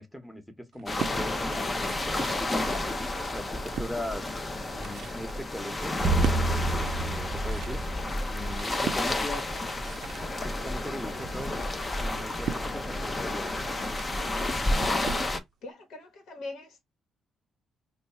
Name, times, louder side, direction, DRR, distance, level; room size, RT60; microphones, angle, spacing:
voice 1, 0.0-3.0 3.3-4.2 4.7-7.8 8.3-9.5 10.4-11.6 12.0-13.7 14.4-14.9, left 1 dB, 5° left, 1.1 m, -39 dB
sound 1, 0.7-1.2 2.0-2.8 3.3-3.9 4.5-15.4, right 9 dB, 70° right, 0.5 m, -40 dB
sound 2, 0.9-15.4, left 2 dB, 25° left, 0.8 m, -31 dB
sound 3, 6.0-8.6, right 2 dB, 25° right, 0.8 m, -28 dB
voice 2, 15.6-16.8, left 2 dB, 75° left, 1.3 m, -42 dB
3.0 x 2.4 x 4.2 m
cardioid pair, 90°, 0 cm